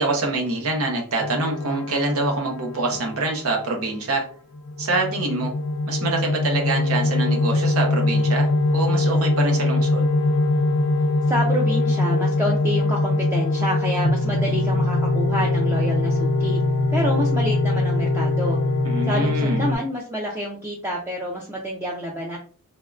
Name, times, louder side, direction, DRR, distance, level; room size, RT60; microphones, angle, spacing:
voice 1, 0.0-4.3 4.8-5.5 5.9-10.1 18.8-19.6, right 2 dB, 80° right, 1 dB, 0.7 m, -25 dB
sound 1, 1.2-3.8 4.5-19.7, left 2 dB, 65° left, 0.4 m, -22 dB
voice 2, 11.3-16.6 16.9-18.6 19.0-22.4, equal, 10° right, -2 dB, 0.4 m, -28 dB
3.4 x 2.1 x 2.4 m, 0.43 s
head